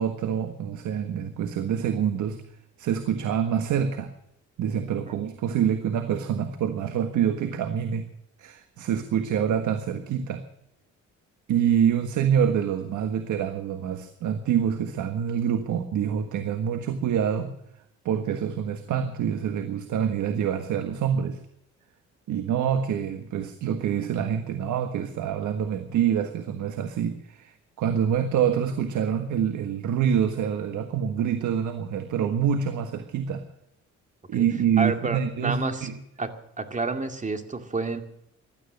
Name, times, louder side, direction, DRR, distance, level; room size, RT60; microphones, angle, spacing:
voice 1, 0.0-2.4 2.8-4.1 4.6-8.0 8.4-10.4 11.5-17.5 18.0-21.4 22.3-33.4 34.3-36.0, right 8 dB, 80° right, 8 dB, 1.5 m, -26 dB
voice 2, 34.8-35.9 36.2-36.3 36.6-38.0, right 3 dB, 25° right, 7 dB, 2.3 m, -29 dB
16.5 x 12.5 x 6.5 m, 0.80 s
cardioid pair, 90°, 30 cm